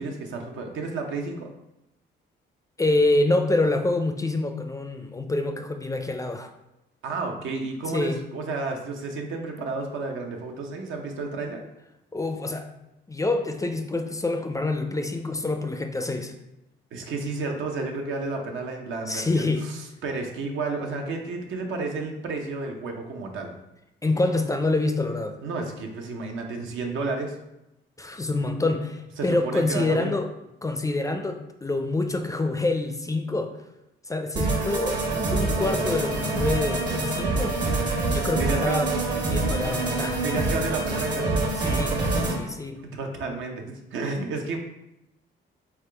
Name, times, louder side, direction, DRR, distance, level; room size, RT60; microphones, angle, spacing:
voice 1, 0.0-1.5 7.0-11.6 16.9-23.5 25.4-27.4 29.2-30.1 38.4-38.8 40.2-41.4 42.8-44.6, right 3 dB, 80° right, 2 dB, 0.7 m, -31 dB
voice 2, 2.8-6.5 7.9-8.2 12.1-12.7 13.1-16.3 19.1-19.7 24.0-25.4 28.0-30.3 30.6-33.6 34.1-35.0 35.3-37.6 38.1-38.9 39.3-40.2 41.6-42.0 42.4-42.8, left 2 dB, 15° left, 6 dB, 0.4 m, -26 dB
sound 1, 34.3-42.4, right 2 dB, 60° right, 1.2 m, -26 dB
3.7 x 3.5 x 3.3 m, 0.89 s
cardioid pair, 90°, 20 cm